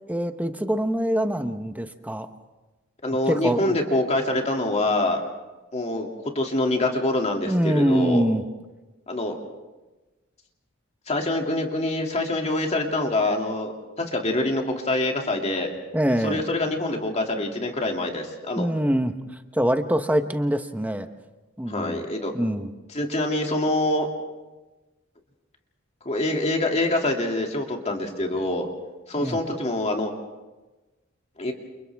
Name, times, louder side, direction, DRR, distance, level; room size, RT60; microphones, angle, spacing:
voice 1, 0.1-2.3 3.3-3.7 7.5-8.4 15.9-16.4 18.6-19.1 19.5-21.1 21.6-22.0 22.3-22.7 29.2-29.4, equal, 10° right, 8 dB, 1.0 m, -24 dB
voice 2, 3.0-5.2 5.7-6.1 6.3-8.2 9.1-9.4 11.1-15.7 16.1-18.7 21.7-22.3 22.9-24.1 26.0-28.7 29.1-30.1 31.4-31.5, left 1 dB, 35° left, 1 dB, 2.6 m, -25 dB
29.5 x 29.0 x 3.5 m, 1.1 s
head